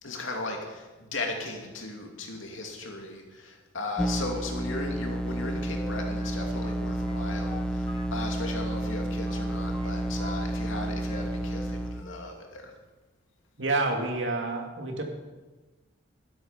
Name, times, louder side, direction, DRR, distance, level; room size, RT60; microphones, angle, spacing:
voice 1, 0.0-12.7, left 2 dB, 90° left, 2 dB, 2.7 m, -37 dB
sound 1, 4.0-12.0, right 1 dB, 5° left, 0.4 m, -31 dB
Wind instrument woodwind instrument, 5.3-8.5 8.8-10.4 10.6-11.7 12.0-12.3, left 2 dB, 30° left, 3.0 m, -46 dB
voice 2, 13.6-15.0, right 2 dB, 70° right, 3 dB, 2.4 m, -28 dB
12.5 x 12.5 x 5.8 m, 1.2 s
head